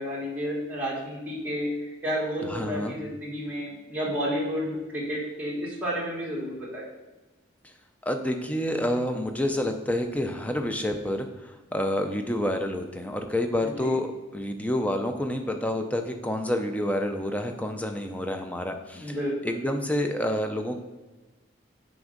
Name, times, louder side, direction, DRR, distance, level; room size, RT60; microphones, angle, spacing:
voice 1, 0.0-1.7 2.0-6.9 13.6-14.0 18.9-19.6, equal, 10° right, -6 dB, 1.6 m, -31 dB
voice 2, 2.5-3.0 7.6-7.7 8.0-19.2 19.4-20.8, left 1 dB, 5° left, 5 dB, 0.4 m, -28 dB
6.0 x 5.2 x 3.8 m, 1.1 s
head